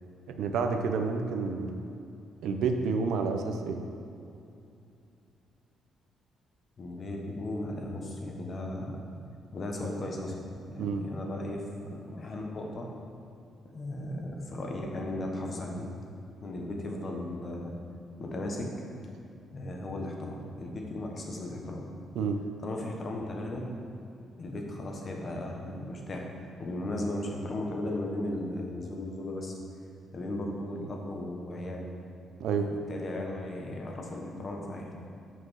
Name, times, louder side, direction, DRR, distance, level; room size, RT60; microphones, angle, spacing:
voice 1, 0.4-1.7 2.4-3.8 10.8-11.1 22.2-22.4 32.4-32.7, right 5 dB, 80° right, 5 dB, 0.6 m, -29 dB
voice 2, 6.8-9.0 9.5-10.4 10.7-12.9 13.7-15.9 16.4-17.8 18.2-18.7 19.5-21.9 22.6-23.7 24.4-26.3 26.6-29.5 30.1-31.9 32.6-35.0, left 1 dB, 40° left, 1 dB, 1.3 m, -36 dB
5.9 x 5.3 x 6.3 m, 2.7 s
cardioid pair, 90°, 0 cm